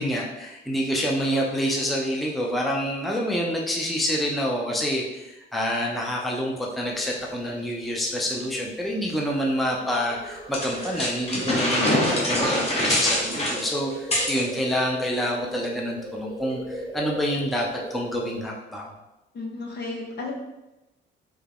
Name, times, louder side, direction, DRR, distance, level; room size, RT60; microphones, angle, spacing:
voice 1, 0.0-18.9, equal, ahead, -2 dB, 0.5 m, -27 dB
sound 1, 6.8-18.5, right 1 dB, 25° right, 0.8 m, -39 dB
sound 2, 10.5-14.4, left 1 dB, 30° left, 1.0 m, -24 dB
voice 2, 19.3-20.3, left 3 dB, 55° left, -1 dB, 0.9 m, -33 dB
3.5 x 2.2 x 3.4 m, 0.98 s
cardioid pair, 90°, 20 cm